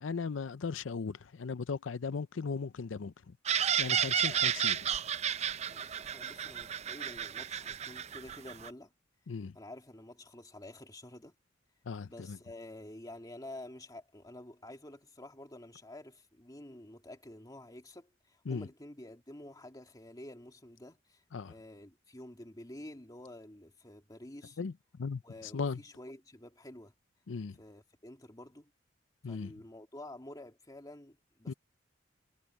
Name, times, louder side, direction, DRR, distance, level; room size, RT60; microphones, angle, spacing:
voice 1, 0.0-3.4 3.8-4.9 9.3-9.5 11.9-12.4 18.5-18.7 21.3-21.5 24.6-25.2 25.5-25.8 27.3-27.6 29.2-29.5 31.5-31.6, left 5 dB, 80° left, 0.5 m, -37 dB
flock of kookaburras, 3.5-8.7, right 9 dB, 35° right, 0.5 m, -32 dB
voice 2, 5.7-8.9 9.5-11.3 12.0-24.6 25.2-26.9 27.6-28.7 29.2-31.5, left 1 dB, 20° left, 2.5 m, -49 dB
head